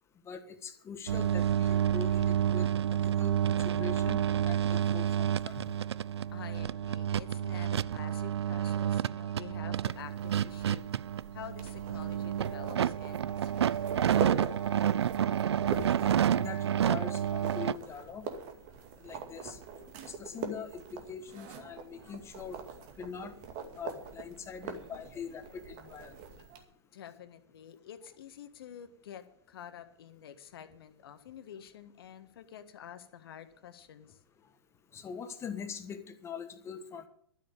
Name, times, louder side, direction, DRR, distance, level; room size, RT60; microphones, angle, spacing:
voice 1, 0.3-2.7 3.0-5.7 16.1-18.3 19.0-19.6 20.1-22.6 23.0-23.3 23.7-26.2 34.9-37.1, left 6 dB, 20° left, 9 dB, 1.5 m, -43 dB
sound 1, 1.1-17.7, right 9 dB, 75° right, 0.4 m, -29 dB
voice 2, 6.3-10.8 11.3-13.8 26.9-34.2, left 9 dB, 60° left, 9 dB, 1.6 m, -48 dB
sound 2, 9.9-26.6, right 5 dB, 40° right, 2.3 m, -43 dB
12.5 x 7.5 x 8.8 m, 0.65 s
hypercardioid pair, 115°, 14 cm